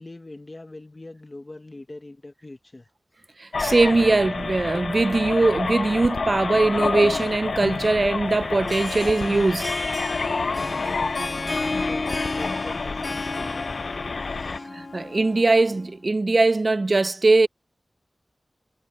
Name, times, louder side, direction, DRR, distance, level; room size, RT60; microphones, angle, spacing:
voice 1, 0.0-2.9 4.1-4.2 10.5-14.7, left 2 dB, 35° left, 1.0 m, -42 dB
voice 2, 3.4-9.7 14.7-17.5, right 3 dB, 45° right, 0.5 m, -21 dB
sound 1, 3.5-14.6, left 4 dB, 75° left, 0.6 m, -29 dB
Harp, 8.5-15.8, left 3 dB, 50° left, 1.8 m, -32 dB
wide cardioid pair, 85°, 0 cm